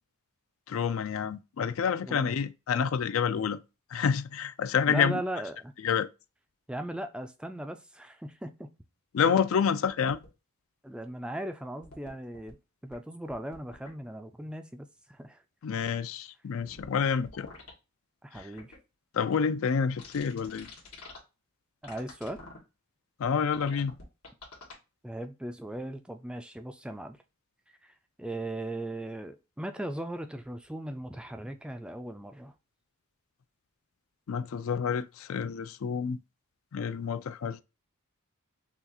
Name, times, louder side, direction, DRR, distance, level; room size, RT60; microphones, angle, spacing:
voice 1, 0.7-3.6 3.9-5.2 5.8-6.1 9.1-10.2 15.6-17.5 19.1-20.7 23.2-23.9 34.3-36.2 36.7-37.6, left 7 dB, 65° left, 0.4 m, -28 dB
voice 2, 2.0-2.4 4.8-5.7 6.7-8.8 10.8-12.6 12.8-15.4 18.2-18.7 21.8-22.4 25.0-27.2 27.8-27.9 28.2-32.5, right 1 dB, 5° right, 0.3 m, -38 dB
sound 1, 9.9-10.3 11.8-12.5 12.9-13.0 13.3-13.9 16.6-16.9 17.2-17.7 18.4-18.8 20.0-21.2 21.8-22.6 23.2-23.3 23.5-24.7, left 3 dB, 85° left, 1.7 m, -48 dB
5.8 x 2.4 x 2.7 m
head